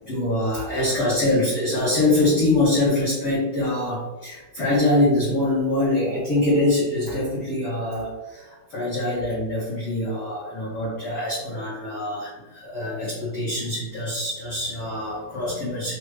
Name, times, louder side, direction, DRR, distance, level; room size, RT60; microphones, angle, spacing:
voice 1, 0.0-16.0, left 2 dB, 90° left, -8 dB, 1.2 m, -24 dB
6.5 x 2.4 x 3.1 m, 1.2 s
omnidirectional pair, 4.6 m